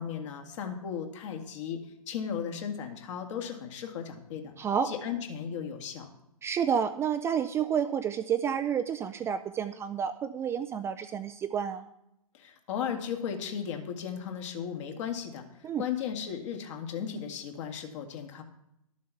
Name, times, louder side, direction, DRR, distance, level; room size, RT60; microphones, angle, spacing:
voice 1, 0.0-4.6 4.8-6.1 12.3-18.4, left 8 dB, 50° left, 4 dB, 2.1 m, -36 dB
voice 2, 4.6-4.9 6.4-11.9 15.6-15.8, right 7 dB, 15° right, 8 dB, 0.4 m, -30 dB
12.5 x 7.4 x 6.0 m, 0.83 s
figure-of-eight pair, 120°, 19 cm